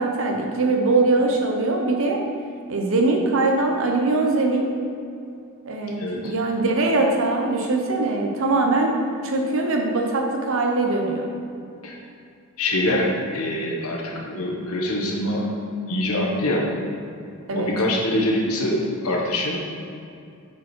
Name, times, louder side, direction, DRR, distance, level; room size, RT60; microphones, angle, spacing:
voice 1, 0.0-2.2 2.7-4.7 5.6-9.0 9.2-11.2 17.5-17.7, right 2 dB, 65° right, 1 dB, 1.0 m, -22 dB
voice 2, 6.0-6.3 11.8-12.0 12.6-15.5 15.9-16.7 17.5-19.7, left 1 dB, 75° left, -1 dB, 1.3 m, -24 dB
7.7 x 5.2 x 4.5 m, 2.4 s
head